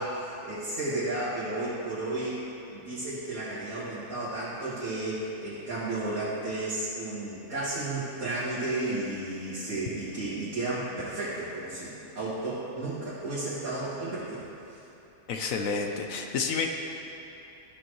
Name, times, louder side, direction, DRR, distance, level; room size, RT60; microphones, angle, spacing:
voice 1, 0.0-2.4 2.7-14.8, right 2 dB, 60° right, -12 dB, 2.2 m, -33 dB
voice 2, 15.3-16.7, left 5 dB, 65° left, 3 dB, 0.9 m, -29 dB
14.0 x 6.8 x 3.1 m, 2.9 s
omnidirectional pair, 1.7 m